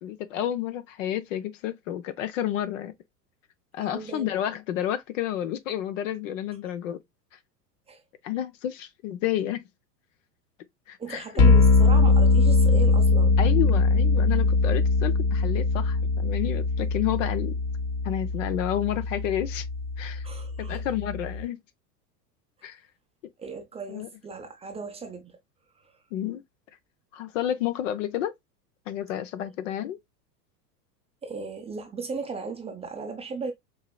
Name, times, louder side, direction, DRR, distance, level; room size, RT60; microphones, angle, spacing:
voice 1, 0.0-2.9 3.7-7.0 8.2-9.6 10.9-11.2 13.4-17.6 18.0-19.6 20.0-20.2 20.6-21.6 22.6-22.8 23.9-24.1 26.1-26.4 27.1-28.3 28.9-30.0, left 11 dB, 50° left, 0.7 m, -30 dB
voice 2, 3.8-4.3 7.9-8.0 11.0-13.3 20.2-20.8 23.4-25.4 25.8-25.9 31.2-33.5, right 4 dB, 10° right, 0.6 m, -36 dB
sound 1, 11.4-21.4, left 3 dB, 35° left, 1.1 m, -22 dB
4.6 x 2.8 x 2.2 m
figure-of-eight pair, 90°, 49 cm